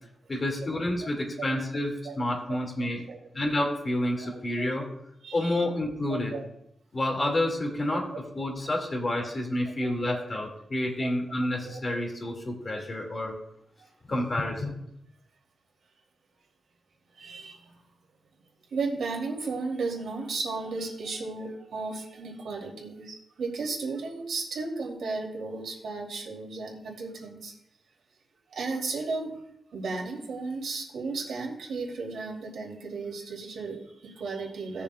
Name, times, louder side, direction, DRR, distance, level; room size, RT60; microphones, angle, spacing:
voice 1, 0.3-3.0 3.3-4.9 5.3-6.4 6.9-13.3 14.1-14.7, left 1 dB, 30° left, 0 dB, 2.2 m, -29 dB
voice 2, 5.2-5.6 6.1-6.5 9.8-10.3 11.0-11.1 11.6-11.8 17.2-17.8 18.7-27.5 28.5-29.4 29.7-34.8, right 3 dB, 80° right, 0 dB, 2.9 m, -34 dB
18.0 x 6.9 x 2.4 m, 0.78 s
wide cardioid pair, 135°, 0 cm